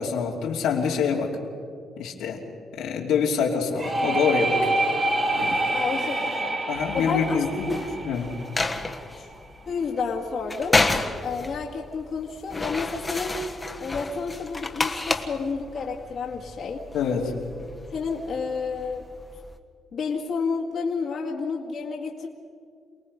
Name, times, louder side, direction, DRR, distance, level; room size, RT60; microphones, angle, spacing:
voice 1, 0.0-1.3 2.0-2.4 2.7-4.7 5.4-5.6 6.7-7.7 8.0-8.3 16.9-17.3, left 6 dB, 90° left, -1 dB, 3.0 m, -25 dB
sound 1, 3.8-9.4, right 2 dB, 35° right, 3.1 m, -27 dB
voice 2, 5.7-6.6 6.9-7.8 9.2-9.3 9.7-10.8 11.2-13.4 13.8-16.8 17.9-19.0 19.9-22.3, left 5 dB, 60° left, -2 dB, 2.1 m, -30 dB
sound 2, 6.7-19.6, left 2 dB, 20° left, 1.5 m, -31 dB
28.0 x 19.0 x 5.4 m, 2.3 s
cardioid pair, 90°, 0 cm